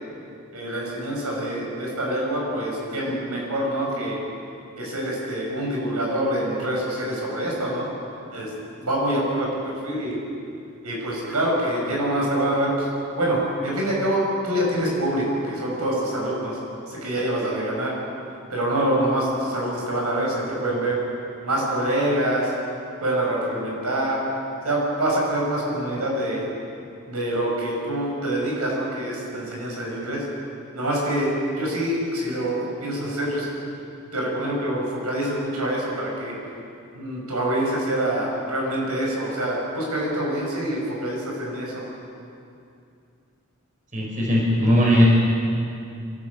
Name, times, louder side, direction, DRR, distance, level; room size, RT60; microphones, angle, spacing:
voice 1, 0.5-4.2 4.8-7.9 8.3-8.5 8.8-10.2 10.8-12.9 13.1-16.6 16.9-17.9 18.5-21.0 21.4-22.5 23.0-24.2 24.6-26.4 27.1-30.2 30.7-33.5 34.1-36.3 37.0-41.7, right 1 dB, 85° right, -3 dB, 7.0 m, -25 dB
voice 2, 43.9-45.1, equal, 35° right, -3 dB, 4.8 m, -18 dB
27.0 x 13.0 x 8.6 m, 2.6 s
head